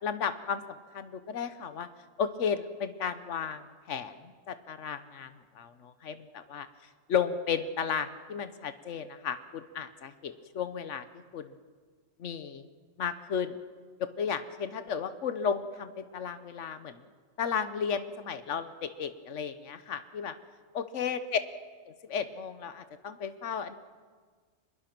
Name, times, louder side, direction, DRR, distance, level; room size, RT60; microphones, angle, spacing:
voice 1, 0.0-1.9 2.2-6.7 7.1-11.5 12.2-12.7 13.0-13.6 14.0-17.0 17.4-20.3 20.7-21.2 22.0-23.8, left 7 dB, 85° left, 11 dB, 1.3 m, -34 dB
24.5 x 21.0 x 6.0 m, 1.6 s
omnidirectional pair, 1.2 m